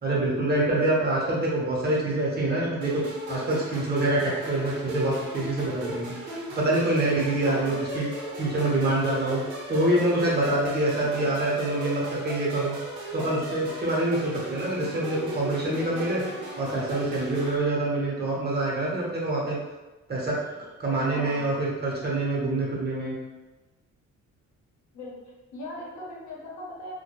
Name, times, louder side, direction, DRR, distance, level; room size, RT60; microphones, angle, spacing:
voice 1, 0.0-3.0 3.3-9.4 9.7-12.8 13.1-16.2 16.6-19.6 20.1-23.1, right 2 dB, 35° right, -4 dB, 0.9 m, -26 dB
sound 1, 2.8-17.6, right 1 dB, 80° right, 0.7 m, -37 dB
voice 2, 7.5-7.8 10.9-11.3 21.1-21.5 24.9-25.1 25.5-26.9, left 1 dB, 70° left, -4 dB, 0.9 m, -39 dB
2.2 x 2.2 x 3.0 m, 1.1 s
cardioid pair, 90°, 30 cm